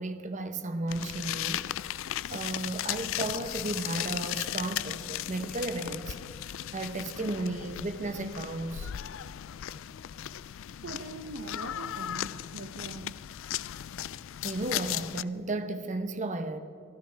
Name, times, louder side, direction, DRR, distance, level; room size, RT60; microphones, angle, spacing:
voice 1, 0.0-1.7 2.3-8.9 14.4-16.6, right 2 dB, 35° right, 0.9 m, -34 dB
sound 1, 0.9-15.2, left 12 dB, 65° left, 0.4 m, -36 dB
voice 2, 10.8-13.2, right 2 dB, 65° right, 0.8 m, -42 dB
25.0 x 14.0 x 3.4 m
head